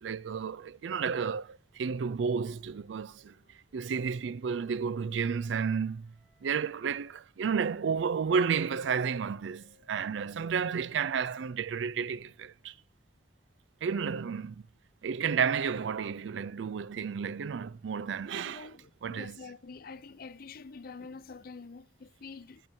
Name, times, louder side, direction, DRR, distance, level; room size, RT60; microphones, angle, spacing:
voice 1, 0.0-3.3 3.7-6.1 6.4-12.7 13.8-14.6 15.0-18.7 19.0-19.4, right 6 dB, 80° right, 0.4 m, -32 dB
Wind instrument woodwind instrument, 2.4-7.1 7.7-12.5, left 1 dB, 55° right, 5.7 m, -70 dB
voice 2, 18.4-22.6, left 4 dB, 55° left, 0.5 m, -46 dB
12.0 x 10.5 x 2.7 m
head